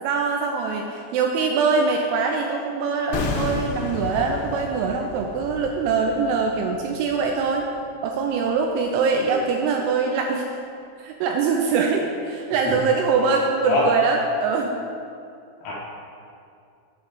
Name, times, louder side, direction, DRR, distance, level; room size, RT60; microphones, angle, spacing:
voice 1, 0.0-7.7 8.0-10.4 11.0-14.8, right 5 dB, 85° right, 2 dB, 2.9 m, -23 dB
sound 1, 3.1-8.2 8.4-8.6, left 4 dB, 85° left, 3.2 m, -32 dB
voice 2, 9.2-9.4 12.7-12.8 13.6-13.9 15.6-15.7, left 2 dB, 65° left, -6 dB, 2.9 m, -24 dB
9.4 x 3.9 x 6.9 m, 2.4 s
omnidirectional pair, 5.8 m